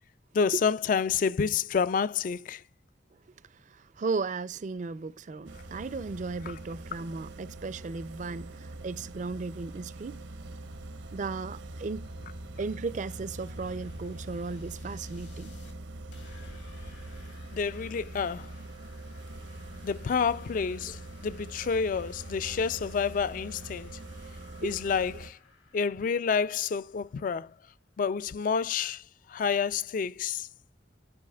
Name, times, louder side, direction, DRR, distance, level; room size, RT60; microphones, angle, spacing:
voice 1, 0.3-2.6 17.5-18.5 19.8-23.9 24.6-25.4 25.7-27.5 28.0-29.0 29.3-30.5, left 6 dB, 45° left, 0.3 m, -29 dB
voice 2, 3.4-10.2 11.1-12.2 12.6-15.6 24.6-24.7, right 4 dB, 40° right, 0.4 m, -35 dB
sound 1, 5.5-25.3, right 2 dB, 85° right, 0.9 m, -43 dB
sound 2, 11.4-15.7 16.1-27.7, left 2 dB, 75° left, 2.3 m, -55 dB
11.5 x 4.9 x 2.3 m
head